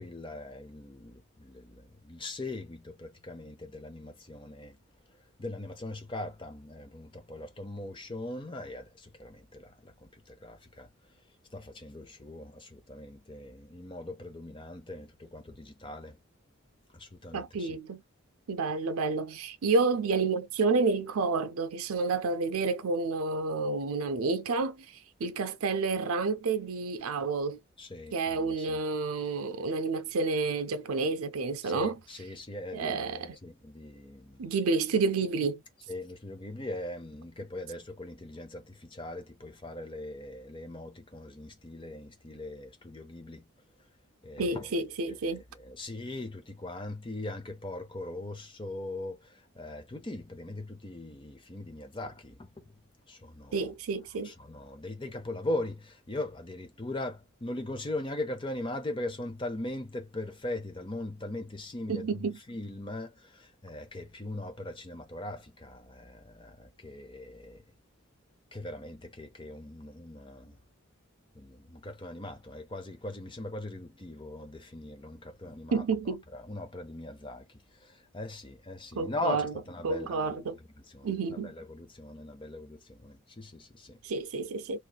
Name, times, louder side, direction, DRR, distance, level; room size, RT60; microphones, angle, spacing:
voice 1, 0.0-4.8 5.4-10.9 11.5-16.2 16.9-17.8 27.8-28.8 31.6-34.5 35.9-43.5 44.2-44.8 45.1-52.7 53.1-53.7 54.2-67.6 68.5-70.6 71.3-75.8 76.3-77.5 77.8-80.4 80.9-84.0, left 2 dB, 20° left, 0.6 m, -40 dB
voice 2, 17.3-18.0 18.5-27.6 28.1-32.0 32.7-33.4 34.4-35.6 44.4-45.4 53.5-54.3 61.9-62.4 75.7-76.2 79.0-79.5 79.8-80.6 81.0-81.5 84.0-84.8, right 4 dB, 80° right, 0.5 m, -30 dB
3.1 x 3.0 x 2.3 m
head